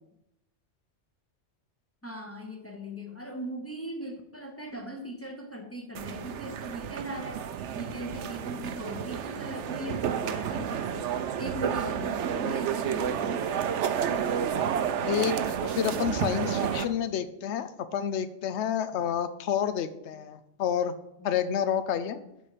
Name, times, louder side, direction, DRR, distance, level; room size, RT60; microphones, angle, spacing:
voice 1, 2.0-7.4 7.7-13.8 20.1-20.3 21.2-21.4 21.9-22.3, equal, 15° left, 2 dB, 0.8 m, -40 dB
sound 1, 5.9-16.8, right 8 dB, 85° right, 0.9 m, -30 dB
voice 2, 15.0-15.3 15.6-20.9 21.2-22.2, left 9 dB, 75° left, 12 dB, 0.9 m, -29 dB
11.0 x 4.3 x 4.9 m, 0.86 s
omnidirectional pair, 1.2 m